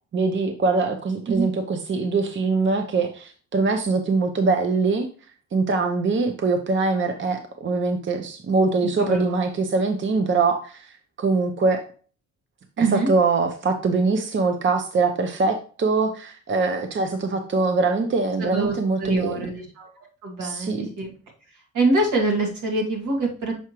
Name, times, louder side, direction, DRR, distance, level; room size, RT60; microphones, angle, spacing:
voice 1, 0.1-5.1 5.5-11.8 12.8-19.4 20.4-20.9, right 3 dB, 40° right, 6 dB, 0.7 m, -23 dB
voice 2, 9.0-9.4 12.8-13.1 18.4-19.9 20.2-21.1 21.7-23.5, right 2 dB, 75° right, -1 dB, 2.2 m, -25 dB
7.0 x 4.8 x 3.0 m, 0.40 s
cardioid pair, 90°, 30 cm